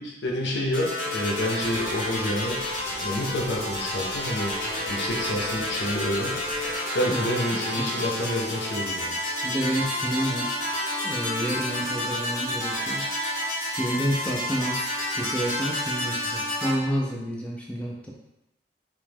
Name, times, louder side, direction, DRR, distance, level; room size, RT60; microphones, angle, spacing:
voice 1, 0.0-2.6 2.9-4.5 4.9-6.4 6.8-9.2, left 1 dB, 80° left, -1 dB, 0.6 m, -28 dB
sound 1, 0.7-16.7, left 1 dB, 50° left, 0.9 m, -30 dB
sound 2, 1.6-6.8, equal, 25° right, 0.8 m, -46 dB
voice 2, 9.4-10.5 11.0-13.1 13.8-14.9 15.1-18.1, equal, 5° left, -4 dB, 0.3 m, -29 dB
3.1 x 2.0 x 3.3 m, 0.94 s
head